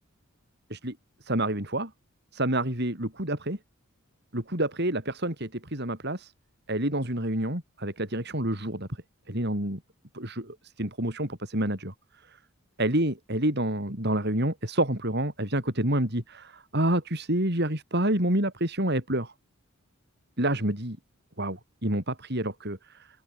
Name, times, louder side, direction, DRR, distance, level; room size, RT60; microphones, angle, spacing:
voice 1, 1.2-1.9 2.3-3.6 4.3-6.3 6.7-8.9 9.3-9.8 10.1-11.9 12.8-19.3 20.4-21.0 21.4-22.8, right 1 dB, 50° right, 5.7 m, -28 dB
open air
head